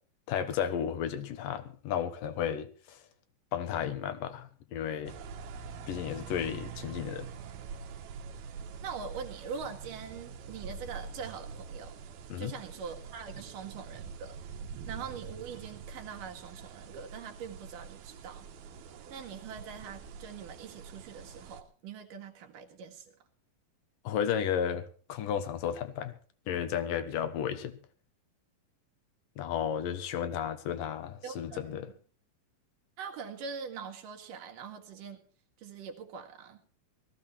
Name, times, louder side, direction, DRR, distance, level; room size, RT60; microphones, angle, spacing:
voice 1, 0.3-3.0 3.5-5.1 5.9-7.3 12.3-12.5 24.0-26.2 26.5-27.8 29.4-31.9, left 9 dB, 70° left, 2.7 m, -33 dB
sound 1, 5.1-21.6, right 6 dB, 85° right, 3.2 m, -45 dB
voice 2, 8.6-12.0 12.4-14.4 14.9-18.5 19.1-23.1 31.2-31.9 33.0-35.3 35.6-36.6, right 6 dB, 65° right, 3.4 m, -43 dB
18.5 x 14.5 x 4.3 m
omnidirectional pair, 4.2 m